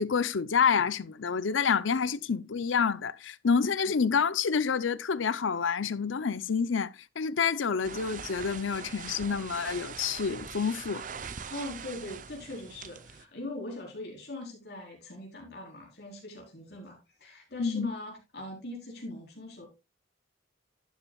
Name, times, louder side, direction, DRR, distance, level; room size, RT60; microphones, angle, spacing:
voice 1, 0.0-11.0 17.6-17.9, left 6 dB, 85° left, 0.6 m, -28 dB
sound 1, 7.8-13.2, right 6 dB, 40° right, 0.6 m, -42 dB
voice 2, 11.5-19.7, left 1 dB, 55° left, 4.2 m, -41 dB
11.5 x 9.7 x 2.3 m
head